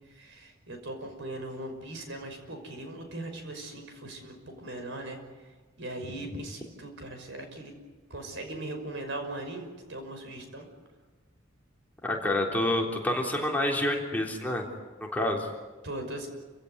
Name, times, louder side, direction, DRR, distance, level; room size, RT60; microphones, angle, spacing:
voice 1, 0.1-5.2 5.8-7.7 8.1-10.7 15.8-16.3, right 1 dB, 65° right, 5 dB, 5.8 m, -39 dB
voice 2, 12.0-14.7 15.1-15.5, left 1 dB, 10° left, -1 dB, 3.5 m, -28 dB
29.0 x 16.5 x 9.6 m, 1.3 s
head